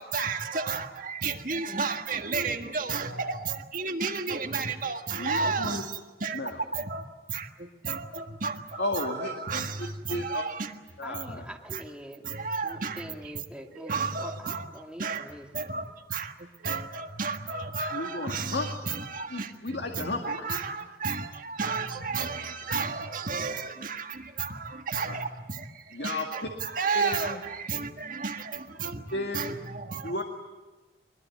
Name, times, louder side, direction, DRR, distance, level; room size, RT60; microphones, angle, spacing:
voice 1, 0.0-7.0 7.3-10.7 11.7-11.8 12.2-13.1 13.7-14.6 15.0-15.3 15.5-16.3 16.6-19.5 19.9-25.7 26.0-29.0 29.3-30.1, right 4 dB, 45° right, 5 dB, 1.6 m, -32 dB
voice 2, 5.2-5.8 6.3-6.6 8.8-10.4 11.0-11.5 17.9-18.7 19.3-20.6 25.0-25.2 25.9-26.5 26.9-27.4 29.1-29.4 30.0-30.2, left 2 dB, 60° left, 3 dB, 2.1 m, -33 dB
voice 3, 11.0-12.3 12.6-15.5 23.4-23.7, equal, 5° right, 3 dB, 1.9 m, -44 dB
23.0 x 22.5 x 9.5 m, 1.2 s
head